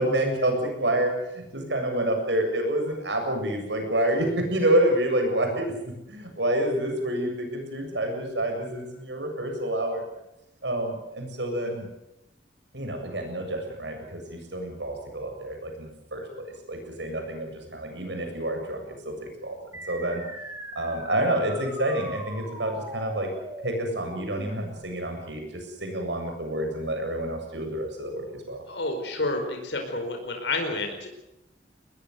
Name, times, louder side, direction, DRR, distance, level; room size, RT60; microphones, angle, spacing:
voice 1, 0.0-10.0 10.6-11.9 12.7-19.6 19.9-20.2 20.8-23.3 23.6-28.6, right 1 dB, 80° right, 4 dB, 7.5 m, -28 dB
sound 1, 19.7-24.7, right 1 dB, 15° right, 3.8 m, -40 dB
voice 2, 28.7-31.1, left 2 dB, 80° left, 4 dB, 4.7 m, -29 dB
22.0 x 20.0 x 8.0 m, 0.88 s
head